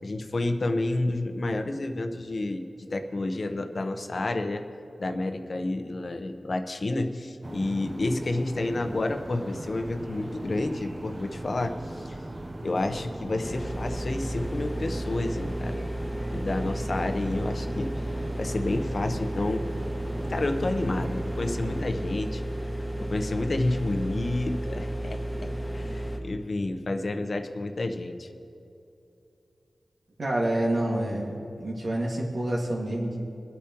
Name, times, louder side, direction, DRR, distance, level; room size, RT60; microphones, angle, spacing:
voice 1, 0.0-4.6 5.0-12.2 12.6-15.9 16.3-19.6 20.3-22.4 22.8-28.3, left 2 dB, 50° left, 6 dB, 0.9 m, -30 dB
sound 1, 7.4-21.8, right 1 dB, 30° right, 0.8 m, -39 dB
sound 2, 13.4-26.2, right 1 dB, 15° left, 1.3 m, -33 dB
voice 2, 30.2-33.2, right 1 dB, 60° right, -3 dB, 1.9 m, -28 dB
22.5 x 8.4 x 3.0 m, 2.7 s
wide cardioid pair, 80°, 0 cm